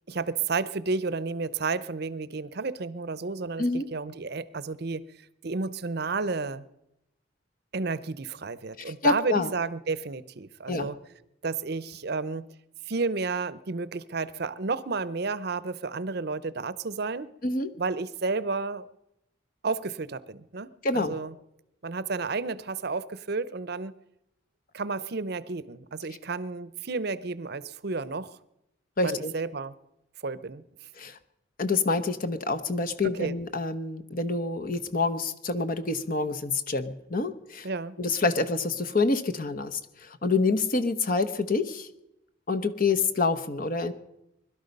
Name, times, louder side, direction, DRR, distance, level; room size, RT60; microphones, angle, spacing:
voice 1, 0.1-5.0 5.4-6.6 7.7-11.0 11.4-12.5 12.8-17.3 17.8-18.9 19.6-21.3 21.8-23.9 24.7-28.4 29.0-29.8 30.2-30.6 33.1-33.3 37.6-37.9, right 4 dB, 55° right, 17 dB, 0.7 m, -31 dB
voice 2, 8.8-9.5 10.7-10.9 17.4-17.7 20.8-21.2 29.0-29.3 31.0-31.2 31.6-37.7 38.0-41.9 42.5-43.9, left 3 dB, 45° left, 8 dB, 1.0 m, -27 dB
21.5 x 12.5 x 5.3 m, 0.86 s
head